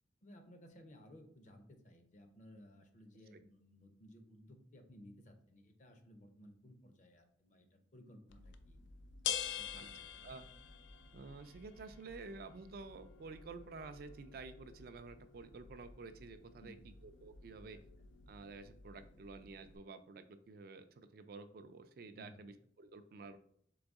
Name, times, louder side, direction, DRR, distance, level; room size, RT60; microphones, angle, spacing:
voice 1, 0.2-8.8 9.4-10.3 16.6-16.9 22.1-22.5, equal, 40° left, 5 dB, 0.6 m, -59 dB
sound 1, 8.3-19.8, left 9 dB, 85° left, 0.4 m, -48 dB
voice 2, 11.1-17.8 18.3-23.4, right 4 dB, 55° right, 9 dB, 0.3 m, -51 dB
3.9 x 3.4 x 3.5 m, 0.62 s
head